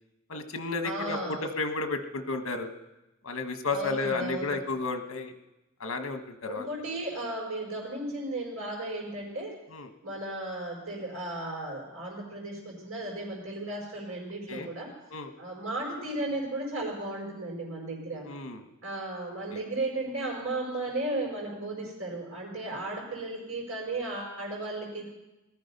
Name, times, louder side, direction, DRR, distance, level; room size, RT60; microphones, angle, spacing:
voice 1, 0.3-2.7 3.2-5.3 5.8-6.7 9.7-9.9 14.5-14.7 15.1-15.3 18.2-18.6 19.5-19.6, left 3 dB, 75° left, 7 dB, 1.4 m, -32 dB
voice 2, 0.8-1.5 3.7-4.6 6.5-9.5 10.0-14.9 15.4-18.3 18.8-25.1, right 2 dB, 85° right, -4 dB, 4.7 m, -35 dB
19.0 x 13.5 x 5.4 m, 0.99 s
head